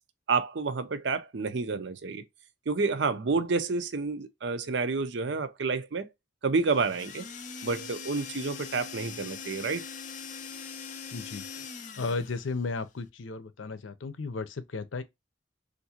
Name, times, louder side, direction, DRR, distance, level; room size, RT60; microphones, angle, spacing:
voice 1, 0.3-2.2 2.7-6.1 6.4-7.2 7.6-9.8, right 4 dB, 65° right, 0.6 m, -29 dB
sound 1, 6.7-12.6, left 6 dB, 40° left, 0.4 m, -42 dB
voice 2, 11.1-11.7 12.0-15.0, left 3 dB, 85° left, 0.6 m, -34 dB
3.5 x 2.6 x 2.7 m
head